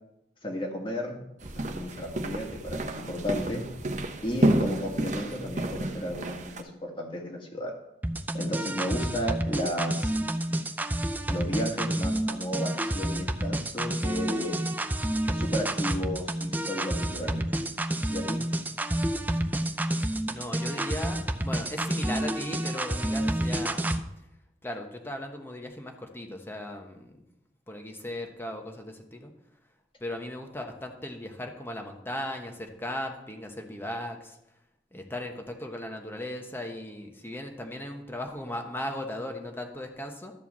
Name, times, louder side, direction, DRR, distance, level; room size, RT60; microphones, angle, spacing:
voice 1, 0.4-3.7 4.2-7.7 8.3-10.1 11.3-14.5 15.2-17.7 18.1-18.4, equal, 30° left, 1 dB, 1.7 m, -33 dB
sound 1, 1.4-6.6, right 1 dB, 45° right, 0.9 m, -30 dB
sound 2, 8.0-24.0, right 1 dB, 10° right, 0.5 m, -29 dB
voice 2, 20.3-24.0 24.6-27.3 27.7-29.3 30.0-34.4 34.9-40.3, left 1 dB, 15° left, 3 dB, 1.2 m, -37 dB
12.5 x 4.5 x 7.3 m, 0.84 s
head